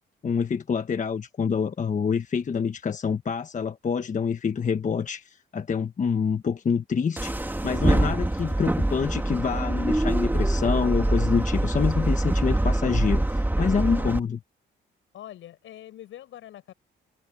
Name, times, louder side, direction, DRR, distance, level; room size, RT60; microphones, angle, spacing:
voice 1, 0.2-14.4, left 6 dB, 40° left, 1.3 m, -27 dB
sound 1, 7.2-14.2, right 1 dB, 10° right, 2.1 m, -24 dB
voice 2, 15.1-16.7, left 12 dB, 80° left, 7.5 m, -44 dB
cardioid pair, 90°, 20 cm